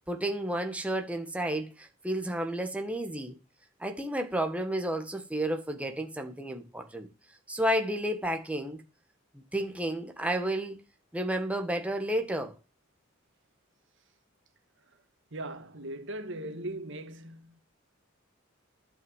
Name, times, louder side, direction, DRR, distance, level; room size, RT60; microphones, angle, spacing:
voice 1, 0.1-3.3 3.8-7.1 7.5-8.8 9.5-10.8 11.1-12.5, right 1 dB, 5° right, 1.6 m, -31 dB
voice 2, 15.3-17.6, right 1 dB, 60° right, 1.8 m, -39 dB
12.0 x 6.2 x 7.3 m
head